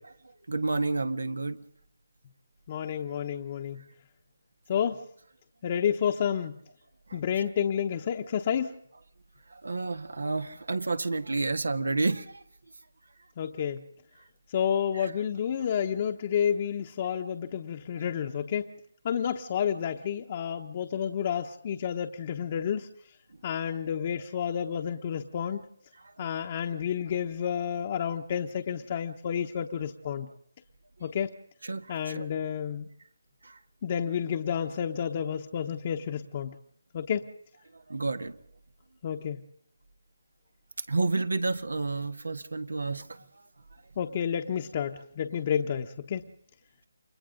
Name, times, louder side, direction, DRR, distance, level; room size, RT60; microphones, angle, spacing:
voice 1, 0.5-1.6 7.1-7.2 9.5-12.4 26.2-26.3 31.6-32.3 33.4-33.6 37.9-38.4 40.9-43.2, right 3 dB, 85° right, 10 dB, 1.6 m, -30 dB
voice 2, 2.7-3.8 4.7-5.0 5.6-6.6 7.1-8.8 13.4-13.8 14.5-18.7 19.0-22.9 23.4-25.6 26.2-30.3 31.0-31.3 31.9-32.9 33.8-36.5 36.9-37.2 39.0-39.4 44.0-46.2, left 8 dB, 35° left, 4 dB, 1.0 m, -30 dB
29.0 x 23.5 x 3.9 m, 0.67 s
figure-of-eight pair, 160°, 0 cm